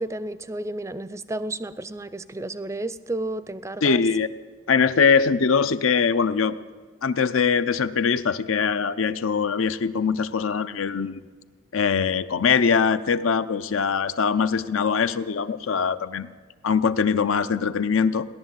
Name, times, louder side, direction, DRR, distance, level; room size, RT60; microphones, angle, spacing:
voice 1, 0.0-4.0, right 2 dB, 15° right, 15 dB, 0.4 m, -32 dB
voice 2, 3.8-4.3 4.7-6.6 7.0-11.2 11.7-16.3 16.6-18.3, left 6 dB, 85° left, 14 dB, 0.6 m, -22 dB
17.0 x 11.0 x 7.5 m, 1.5 s
head